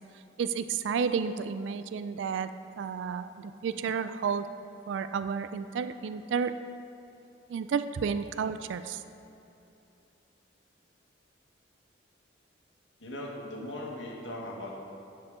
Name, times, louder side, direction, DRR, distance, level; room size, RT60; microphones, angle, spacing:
voice 1, 0.4-2.5 2.8-4.5 4.9-6.5 7.5-9.0, right 6 dB, 80° right, 11 dB, 0.3 m, -31 dB
voice 2, 13.0-14.7, left 1 dB, 80° left, -2 dB, 1.5 m, -39 dB
10.5 x 4.7 x 4.9 m, 2.9 s
head